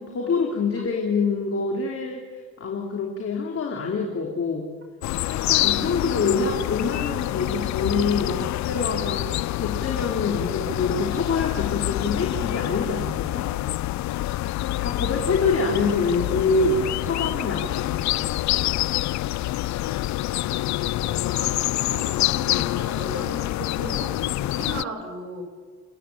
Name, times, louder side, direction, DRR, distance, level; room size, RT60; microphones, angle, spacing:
voice 1, 0.0-4.7 5.3-13.5 14.8-18.3, left 4 dB, 50° left, 0 dB, 3.3 m, -26 dB
sound 1, 5.0-24.8, left 16 dB, 70° left, 0.5 m, -26 dB
voice 2, 20.4-20.8 21.0-25.4, right 2 dB, 45° right, 2 dB, 5.8 m, -37 dB
29.0 x 10.0 x 8.9 m, 1.5 s
cardioid pair, 90°, 30 cm